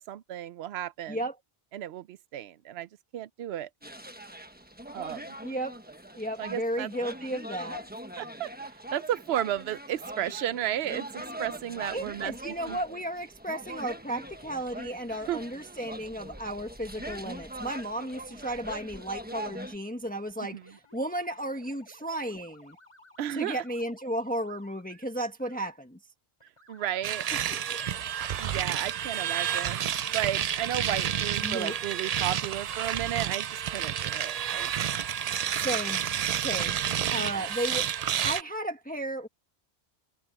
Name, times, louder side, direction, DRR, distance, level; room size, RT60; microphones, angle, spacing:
voice 1, 0.0-1.2 1.7-3.7 4.9-5.2 6.4-6.9 8.2-8.5 8.9-12.3 12.7-12.8 15.3-15.4 20.4-20.6 23.2-23.6 26.7-27.3 28.4-34.7 37.1-37.5, right 12 dB, 85° right, 0.8 m, -33 dB
sound 1, 3.8-19.8, right 1 dB, 10° right, 1.2 m, -42 dB
voice 2, 5.4-5.7 6.1-7.8 11.9-22.8 23.3-26.0 27.3-27.8 31.4-31.8 35.5-36.0 36.4-36.8 37.1-37.9 38.2-39.3, right 1 dB, 10° left, 1.3 m, -34 dB
sound 2, 16.9-19.3 20.6-25.0 25.4-25.7 26.4-30.9, left 1 dB, 30° left, 4.5 m, -56 dB
sound 3, 27.0-38.4, right 9 dB, 55° right, 0.4 m, -30 dB
omnidirectional pair, 1.0 m